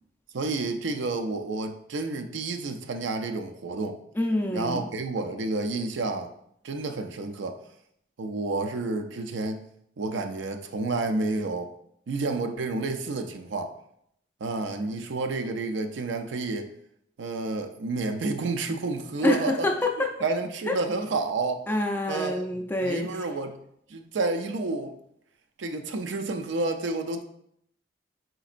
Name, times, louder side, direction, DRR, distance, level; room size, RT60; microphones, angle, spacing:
voice 1, 0.3-4.0 4.5-6.3 6.6-7.6 8.2-9.6 10.0-11.7 12.1-13.7 14.4-16.7 17.2-19.7 20.2-21.7 22.1-23.6 23.9-24.9 25.6-27.2, right 3 dB, 70° right, 6 dB, 0.4 m, -30 dB
voice 2, 4.2-4.9 19.2-20.1 20.7-20.8 21.7-23.1, left 1 dB, 10° left, 2 dB, 0.4 m, -26 dB
5.1 x 3.9 x 2.5 m, 0.72 s
head